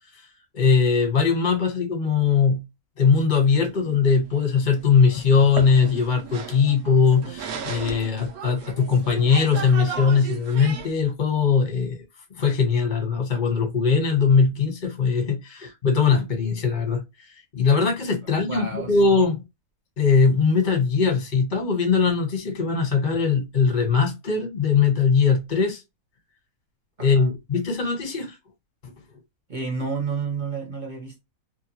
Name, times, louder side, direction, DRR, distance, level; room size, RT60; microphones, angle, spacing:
voice 1, 0.5-2.6 3.0-12.0 12.3-17.0 17.5-19.4 20.0-25.8 27.0-28.4 28.8-28.9, left 5 dB, 35° left, 1.1 m, -20 dB
sound 1, 3.7-11.0, right 6 dB, 80° right, 1.1 m, -36 dB
voice 2, 18.2-19.2 27.0-27.3 29.5-31.2, right 5 dB, 40° right, 0.8 m, -31 dB
2.9 x 2.2 x 2.7 m
omnidirectional pair, 1.6 m